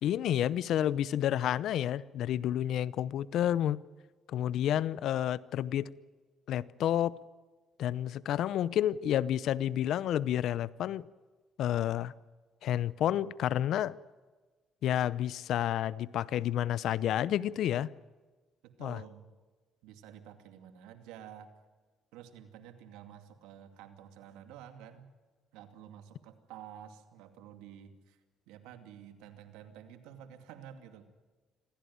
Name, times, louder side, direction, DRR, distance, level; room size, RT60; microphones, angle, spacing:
voice 1, 0.0-3.8 4.3-5.9 6.5-7.2 7.8-11.1 11.6-12.1 12.6-14.0 14.8-17.9 18.8-19.0, left 11 dB, 70° left, 0.7 m, -30 dB
voice 2, 18.6-19.3 19.8-21.5 22.1-25.1 25.5-31.0, right 9 dB, 85° right, 2.4 m, -50 dB
25.0 x 16.5 x 9.5 m
supercardioid pair, 75°, 0 cm